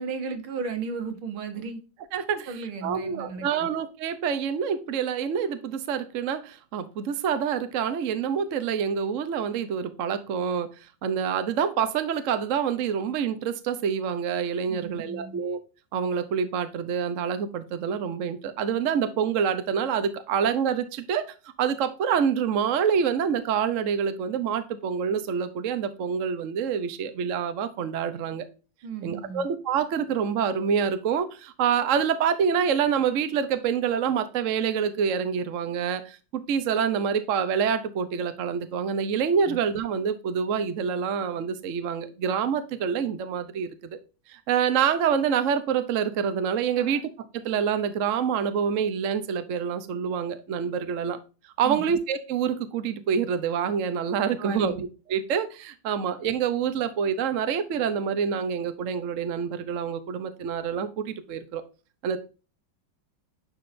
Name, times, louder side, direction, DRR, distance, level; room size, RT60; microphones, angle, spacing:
voice 1, 0.0-1.8 2.3-3.5 14.7-15.4 28.8-29.5 39.5-39.6 46.8-47.0 51.6-52.0 54.4-54.7, right 5 dB, 75° right, 6 dB, 2.1 m, -35 dB
voice 2, 2.1-2.5 2.8-10.7 11.0-15.6 15.9-28.5 29.0-44.0 44.3-51.2 51.6-61.6 62.0-62.2, right 7 dB, 55° right, 11 dB, 0.8 m, -27 dB
10.0 x 5.0 x 2.6 m, 0.33 s
omnidirectional pair, 2.3 m